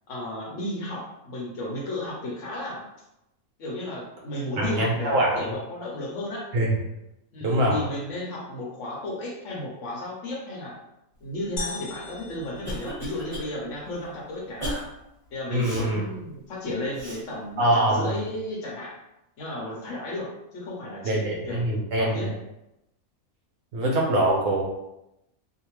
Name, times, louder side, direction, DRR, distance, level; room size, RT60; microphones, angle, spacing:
voice 1, 0.1-2.8 3.6-6.5 7.3-10.7 11.2-14.7 15.3-19.0 19.4-21.6 22.0-22.3, left 1 dB, 65° left, -3 dB, 1.0 m, -34 dB
voice 2, 4.6-5.4 6.5-6.7 7.4-7.8 15.5-16.0 17.6-18.2 21.0-22.3 23.7-24.6, right 1 dB, 65° right, -2 dB, 0.9 m, -23 dB
sound 1, 11.6-13.5, left 3 dB, 90° left, 1.1 m, -37 dB
Cough, 12.0-13.5 13.9-14.0 14.6-14.9 15.6-15.9 16.9-17.2, equal, 25° right, 1.0 m, -34 dB
2.7 x 2.1 x 3.0 m, 0.87 s
omnidirectional pair, 1.5 m